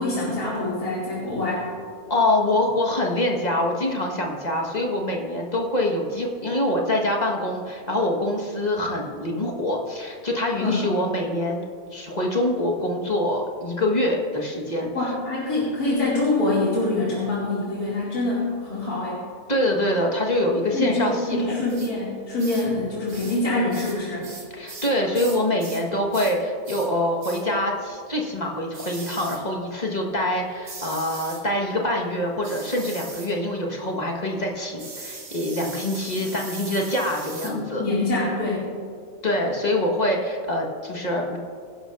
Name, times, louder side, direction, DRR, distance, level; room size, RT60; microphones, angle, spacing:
voice 1, 0.0-1.7 10.6-10.9 14.9-19.2 20.7-24.2 37.4-38.6, left 2 dB, 90° left, -8 dB, 3.0 m, -25 dB
voice 2, 2.1-11.6 11.9-15.1 19.5-21.6 24.5-37.8 39.2-41.4, left 1 dB, 30° left, 0 dB, 1.5 m, -25 dB
sound 1, 21.7-21.9 22.4-22.7 23.1-23.4 23.7-25.9 26.1-26.4 26.6-26.9 27.2-27.5 28.7-29.4 30.6-31.4 32.4-33.3 34.8-37.6, right 3 dB, 70° right, 2.2 m, -39 dB
23.5 x 11.0 x 2.6 m, 2.2 s
omnidirectional pair, 1.5 m